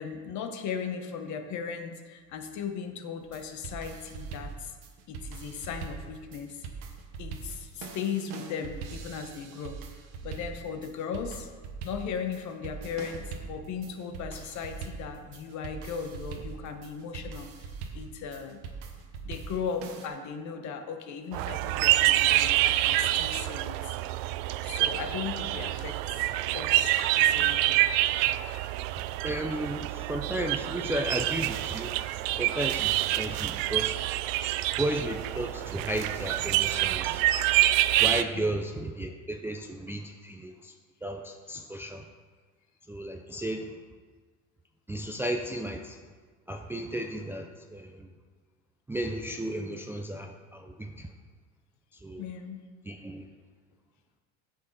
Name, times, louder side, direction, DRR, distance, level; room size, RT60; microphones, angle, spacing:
voice 1, 0.0-4.8 5.1-6.7 7.2-9.8 10.2-11.5 11.8-17.7 17.9-18.6 19.2-24.0 24.6-26.0 26.5-27.8 38.3-38.6 41.5-41.6 52.2-52.6, left 6 dB, 55° left, 6 dB, 1.1 m, -37 dB
sound 1, 3.2-20.1, right 5 dB, 85° right, 1.1 m, -42 dB
sound 2, 21.3-38.2, right 15 dB, 70° right, 0.5 m, -27 dB
voice 2, 29.2-32.0 32.4-34.2 34.8-37.2 38.0-40.7 41.0-42.0 42.9-43.7 44.9-46.0 46.5-48.1 48.9-51.1 52.0-52.2 52.9-53.2, right 1 dB, 5° right, 3 dB, 0.4 m, -34 dB
9.4 x 6.4 x 4.1 m, 1.5 s
supercardioid pair, 110°, 35 cm